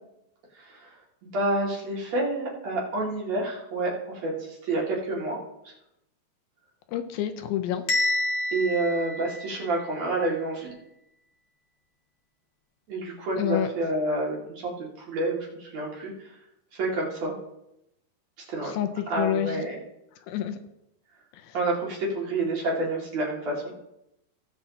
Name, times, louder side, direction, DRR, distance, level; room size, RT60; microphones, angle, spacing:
voice 1, 0.5-0.9 1.3-5.4 8.5-10.7 12.9-16.3 16.7-17.4 18.5-18.8 19.1-19.8 21.5-23.6, right 2 dB, 45° right, -3 dB, 3.0 m, -28 dB
voice 2, 6.9-7.8 13.4-13.7 18.6-19.6 20.3-20.6 21.5-21.6, left 11 dB, 80° left, 8 dB, 2.3 m, -28 dB
Bell, 7.9-9.9, left 2 dB, 60° left, 1.4 m, -28 dB
17.5 x 7.3 x 2.8 m, 0.84 s
omnidirectional pair, 4.6 m